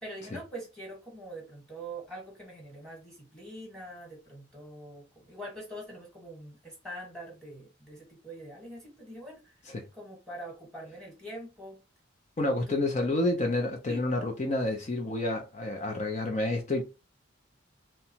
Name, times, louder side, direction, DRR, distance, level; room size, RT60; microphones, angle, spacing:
voice 1, 0.0-11.8 12.7-12.8 13.9-14.0, right 1 dB, 5° left, 1.2 m, -44 dB
voice 2, 12.4-16.8, left 2 dB, 35° left, 0.5 m, -29 dB
2.8 x 2.2 x 2.7 m
head